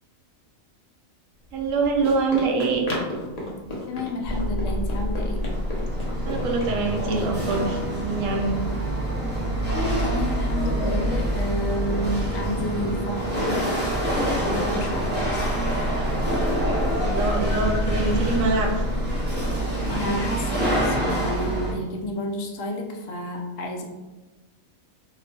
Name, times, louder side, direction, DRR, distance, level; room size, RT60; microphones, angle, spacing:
Run, 1.5-7.7, left 1 dB, 40° left, 0.6 m, -35 dB
voice 1, 1.5-2.9 6.2-8.5 16.9-18.8, right 3 dB, 75° right, 1 dB, 1.0 m, -24 dB
voice 2, 3.9-5.4 9.7-15.6 19.9-23.8, left 1 dB, 70° left, 2 dB, 0.9 m, -30 dB
sound 1, 4.2-19.6, left 1 dB, 40° right, 0.8 m, -30 dB
Chatter / Hiss / Rattle, 4.8-21.7, right 1 dB, 10° right, 0.6 m, -27 dB
2.9 x 2.1 x 4.0 m, 1.1 s
omnidirectional pair, 1.4 m